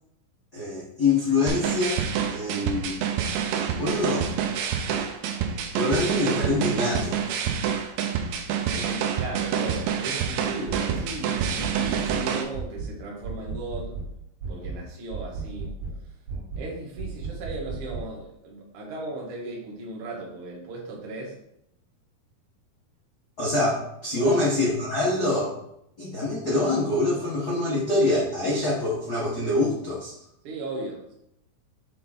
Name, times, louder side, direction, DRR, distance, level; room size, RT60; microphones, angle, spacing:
voice 1, 0.5-2.0 2.3-3.0 3.5-4.3 5.7-7.2 23.4-25.5 26.0-30.1, left 2 dB, 75° left, -7 dB, 0.9 m, -25 dB
sound 1, 1.5-12.4, right 7 dB, 85° right, 2.7 m, -27 dB
voice 2, 8.7-13.9 14.5-15.7 16.6-21.4 24.1-24.6 30.4-31.1, right 2 dB, 50° right, -2 dB, 1.8 m, -37 dB
sound 2, 10.7-11.1 11.4-12.2 12.5-12.9 13.2-14.1 14.4-14.8 15.1-16.0 16.3-16.7 17.0-18.1, right 4 dB, 65° right, 3.3 m, -34 dB
7.5 x 3.7 x 4.2 m, 0.76 s
omnidirectional pair, 4.4 m